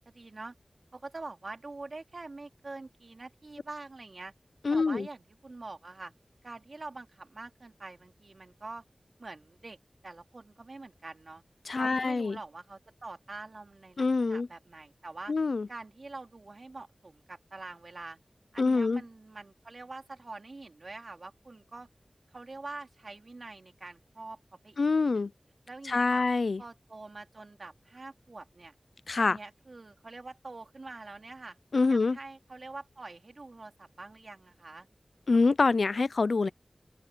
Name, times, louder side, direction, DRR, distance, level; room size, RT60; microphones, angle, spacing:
voice 1, 0.1-0.5 0.9-4.3 4.7-6.1 6.4-8.8 9.2-9.8 10.0-11.4 11.7-15.3 15.7-18.2 18.5-21.9 22.3-24.4 24.6-25.3 25.7-26.3 26.6-28.7 29.2-31.6 31.9-34.9, right 3 dB, 65° right, 3.1 m, -45 dB
voice 2, 4.6-5.1 11.7-12.4 14.0-14.5 15.3-15.7 18.6-19.0 24.8-25.3 25.9-26.6 29.1-29.4 31.7-32.2 35.3-36.5, left 3 dB, 80° left, 0.5 m, -25 dB
open air
cardioid pair, 40°, 0 cm